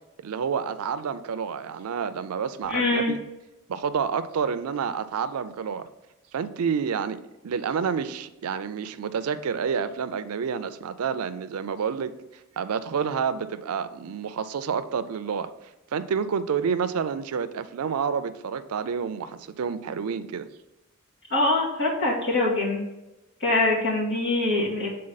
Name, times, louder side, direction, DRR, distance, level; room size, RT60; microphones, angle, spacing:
voice 1, 0.2-3.2 3.7-5.9 6.3-12.1 12.6-15.5 15.9-20.5, right 6 dB, 90° right, 13 dB, 0.4 m, -29 dB
voice 2, 2.7-3.1 21.3-22.8 23.4-24.9, left 2 dB, 50° left, -5 dB, 2.3 m, -23 dB
7.6 x 3.9 x 4.0 m, 0.99 s
head